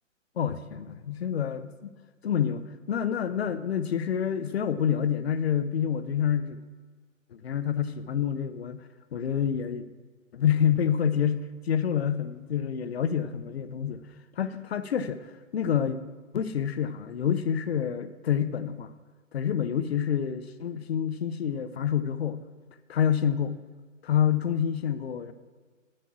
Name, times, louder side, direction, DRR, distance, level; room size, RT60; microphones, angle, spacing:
voice 1, 0.4-1.9 2.2-6.6 7.3-9.9 10.3-14.0 14.4-16.0 16.3-18.9 19.3-22.4 22.9-23.6 24.0-25.3, left 8 dB, 50° left, 12 dB, 0.7 m, -28 dB
9.0 x 8.9 x 4.7 m, 1.5 s
figure-of-eight pair, 135°, 40 cm